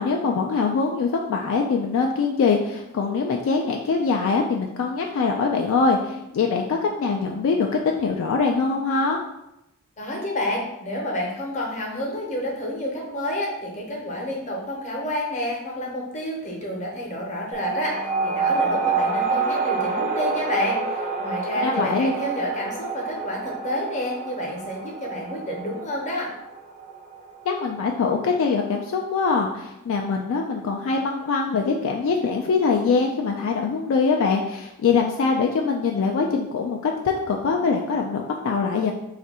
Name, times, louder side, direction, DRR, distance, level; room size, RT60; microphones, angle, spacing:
voice 1, 0.0-9.2 21.6-22.1 27.5-38.9, left 4 dB, 60° left, 1 dB, 0.3 m, -23 dB
voice 2, 10.0-26.3, left 1 dB, 35° left, -1 dB, 0.7 m, -29 dB
sound 1, 17.5-28.4, right 4 dB, 35° right, 0.4 m, -27 dB
2.6 x 2.4 x 4.1 m, 0.87 s
head